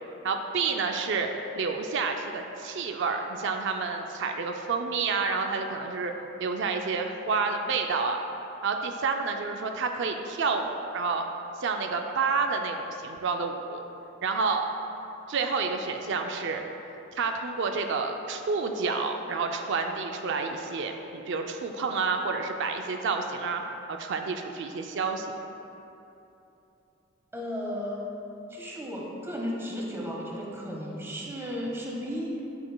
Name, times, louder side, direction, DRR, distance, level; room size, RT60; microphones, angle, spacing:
voice 1, 0.2-1.3 1.5-6.1 6.4-8.2 8.6-11.2 11.6-13.8 14.2-14.7 15.3-16.6 17.2-23.6 23.9-25.3, right 4 dB, 65° right, 4 dB, 0.4 m, -29 dB
voice 2, 27.3-28.0 28.5-32.3, equal, 15° right, -3 dB, 1.1 m, -34 dB
11.0 x 6.8 x 2.3 m, 3.0 s
head